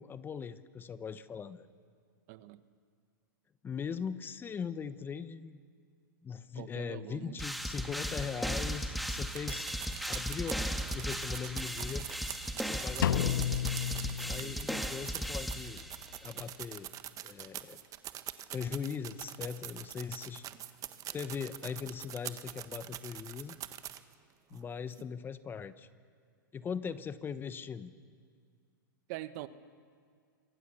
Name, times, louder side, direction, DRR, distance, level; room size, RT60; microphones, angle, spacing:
voice 1, 0.0-1.7 3.6-5.6 6.2-9.7 10.1-10.7 10.9-12.1 12.6-13.4 14.2-15.8 16.2-16.9 17.2-17.8 18.5-20.4 21.1-23.6 24.5-25.9 26.5-27.9, left 6 dB, 20° left, 14 dB, 0.9 m, -40 dB
voice 2, 2.3-2.6 6.5-7.4 14.4-14.7 24.5-24.6 29.1-29.5, right 16 dB, 50° right, 13 dB, 1.2 m, -44 dB
sound 1, 7.4-16.2, equal, ahead, 1.6 m, -36 dB
sound 2, 9.3-24.1 24.6-24.7 24.9-25.0, right 12 dB, 30° right, 1.3 m, -44 dB
Drum, 13.0-14.9, left 10 dB, 75° left, 0.7 m, -32 dB
27.0 x 24.5 x 7.0 m, 2.1 s
hypercardioid pair, 120°, 11 cm